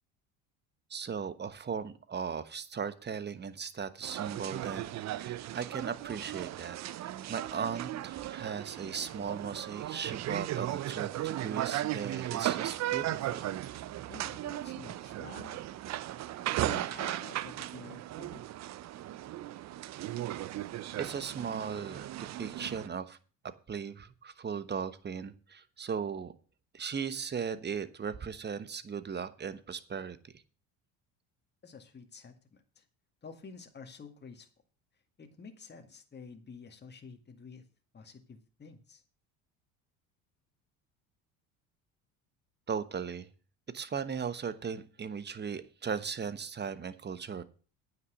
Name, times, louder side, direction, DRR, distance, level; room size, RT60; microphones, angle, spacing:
voice 1, 0.9-13.4 21.0-22.1 22.4-23.2 23.7-26.3 26.7-30.3 42.7-43.3 43.7-47.4, right 6 dB, 25° right, 13 dB, 1.1 m, -37 dB
sound 1, 4.0-22.9, right 14 dB, 45° right, 0.6 m, -36 dB
voice 2, 14.1-15.6 16.6-18.4 31.6-32.8 33.2-34.5 35.2-37.6 37.9-39.0, left 5 dB, 25° left, 5 dB, 2.0 m, -49 dB
9.4 x 6.2 x 7.9 m, 0.37 s
supercardioid pair, 85°, 39 cm